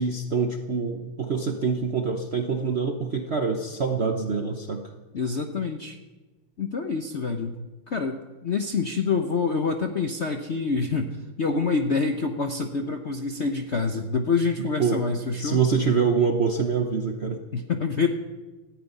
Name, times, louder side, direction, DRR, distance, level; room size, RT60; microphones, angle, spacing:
voice 1, 0.0-4.9 14.6-15.0 15.4-17.4, right 5 dB, 55° right, 5 dB, 0.7 m, -25 dB
voice 2, 5.1-6.0 6.6-7.5 7.9-15.6 17.5-18.1, left 4 dB, 60° left, 5 dB, 0.7 m, -26 dB
14.5 x 9.5 x 9.1 m, 1.2 s
omnidirectional pair, 2.3 m